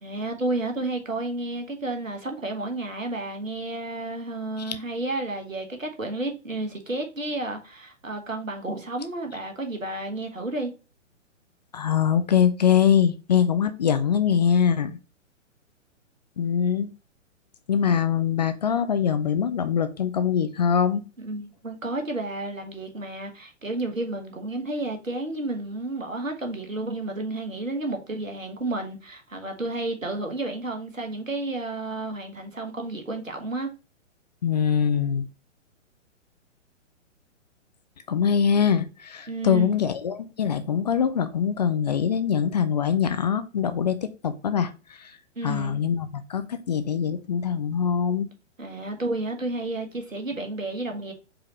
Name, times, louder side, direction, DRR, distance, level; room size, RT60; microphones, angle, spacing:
voice 1, 0.0-10.7 21.2-33.7 39.3-39.7 45.4-45.9 48.6-51.1, right 2 dB, 90° right, 1.3 m, -31 dB
voice 2, 11.7-15.0 16.4-16.9 17.7-21.0 34.4-35.3 38.1-44.7 45.0-45.1 45.4-48.3, left 8 dB, 35° left, 0.4 m, -23 dB
4.8 x 3.8 x 3.0 m
figure-of-eight pair, 120°, 38 cm